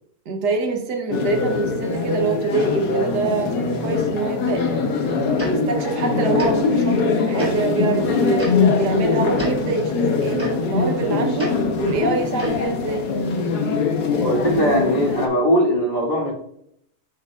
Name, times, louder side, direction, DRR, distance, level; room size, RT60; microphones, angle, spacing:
voice 1, 0.3-4.6 5.4-11.5 11.8-13.1, right 4 dB, 75° right, 3 dB, 1.5 m, -25 dB
sound 1, 1.1-15.3, left 4 dB, 70° left, 1.5 m, -22 dB
Tick-tock, 5.4-5.5 6.4-6.5 7.4-7.5 8.4-8.5 9.3-9.5 10.4-10.5 11.4-11.5 12.4-12.6, right 1 dB, 10° right, 2.7 m, -27 dB
voice 2, 14.2-16.3, equal, 30° left, -6 dB, 2.1 m, -20 dB
11.5 x 4.6 x 2.4 m, 0.71 s
omnidirectional pair, 1.8 m